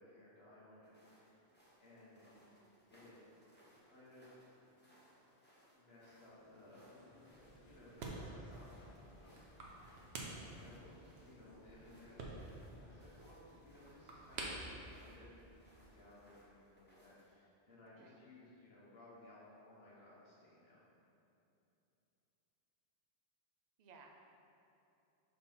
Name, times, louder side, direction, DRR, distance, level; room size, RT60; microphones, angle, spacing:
voice 1, 0.0-1.4 1.8-2.2 2.9-3.2 3.8-4.9 5.8-6.9 7.6-8.7 10.1-20.8, left 1 dB, 70° left, -8 dB, 1.7 m, -60 dB
sound 1, 0.8-17.3, equal, 10° left, 0.9 m, -68 dB
voice 2, 2.3-2.8 17.9-18.2 23.8-24.2, right 4 dB, 50° right, 2 dB, 0.6 m, -61 dB
sound 2, 6.1-16.1, left 1 dB, 45° left, 0.8 m, -64 dB
sound 3, 7.3-16.0, right 2 dB, 80° right, 1.1 m, -50 dB
4.3 x 4.1 x 5.5 m, 2.8 s
omnidirectional pair, 1.1 m